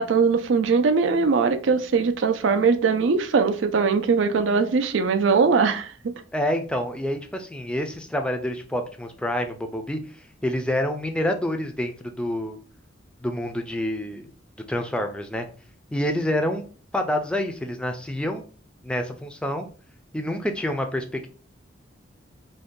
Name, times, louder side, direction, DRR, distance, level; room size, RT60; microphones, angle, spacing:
voice 1, 0.0-6.1, right 5 dB, 80° right, 0.4 m, -21 dB
voice 2, 6.3-10.2 10.4-12.6 13.2-14.3 14.7-15.5 15.9-16.6 16.9-18.4 18.8-19.7 20.1-21.3, left 1 dB, 5° left, 0.3 m, -27 dB
2.6 x 2.2 x 3.6 m
head